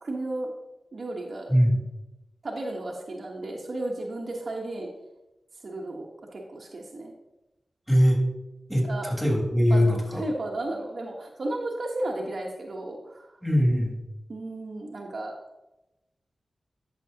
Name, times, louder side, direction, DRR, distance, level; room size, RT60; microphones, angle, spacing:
voice 1, 0.0-0.5 0.9-1.5 2.4-4.9 5.6-6.0 6.3-7.1 8.8-9.1 9.7-9.8 10.1-13.3 14.3-15.3, right 2 dB, 60° right, -1 dB, 1.2 m, -33 dB
voice 2, 7.9-8.2 8.7-10.2 13.4-14.0, equal, 5° right, -1 dB, 2.9 m, -21 dB
11.0 x 6.2 x 2.9 m, 0.97 s
cardioid pair, 55°, 0 cm